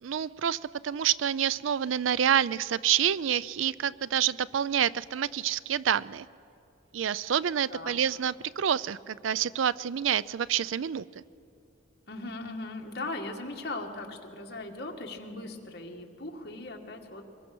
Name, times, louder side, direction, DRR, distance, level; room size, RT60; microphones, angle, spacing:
voice 1, 0.0-6.3 6.9-11.2, right 9 dB, 90° right, 19 dB, 0.4 m, -28 dB
voice 2, 12.1-17.2, left 2 dB, 55° left, 2 dB, 2.0 m, -39 dB
24.0 x 21.5 x 6.2 m, 2.7 s
head